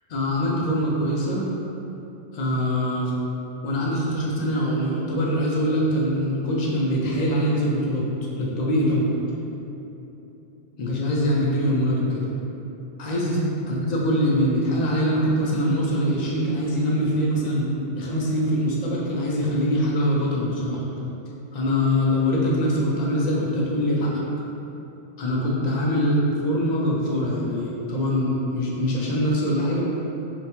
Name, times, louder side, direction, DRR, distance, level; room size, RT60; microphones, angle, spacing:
voice 1, 0.1-1.6 2.3-3.1 3.6-8.1 8.4-9.1 10.8-12.3 13.0-20.8 21.5-24.1 25.2-29.8, equal, 75° left, -4 dB, 0.4 m, -23 dB
3.9 x 2.2 x 2.9 m, 3.0 s
omnidirectional pair, 1.2 m